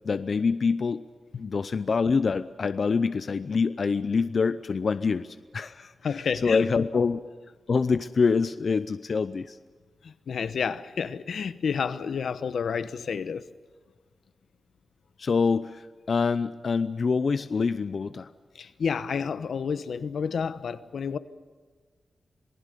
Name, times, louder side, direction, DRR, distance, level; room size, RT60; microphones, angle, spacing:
voice 1, 0.0-1.0 1.4-7.2 7.7-9.6 15.2-18.3, left 5 dB, 55° left, 0.6 m, -26 dB
voice 2, 6.0-6.7 10.0-13.5 18.5-21.2, left 6 dB, 80° left, 1.0 m, -30 dB
27.5 x 19.5 x 6.8 m
wide cardioid pair, 110°, 0 cm